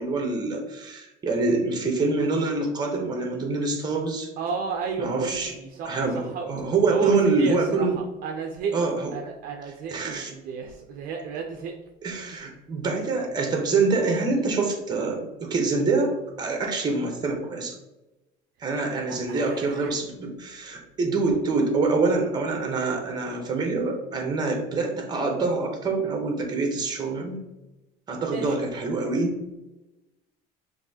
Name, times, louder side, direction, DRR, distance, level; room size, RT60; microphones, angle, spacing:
voice 1, 0.0-4.3 5.0-5.5 5.8-8.0 8.7-9.1 9.9-10.3 12.0-17.8 18.6-27.4 28.1-29.3, right 3 dB, 20° right, 3 dB, 0.9 m, -25 dB
voice 2, 4.4-8.7 9.1-11.7 19.1-19.9 28.3-28.6, right 5 dB, 50° right, 2 dB, 0.6 m, -32 dB
5.8 x 2.7 x 2.8 m, 1.0 s
cardioid pair, 140°, 19 cm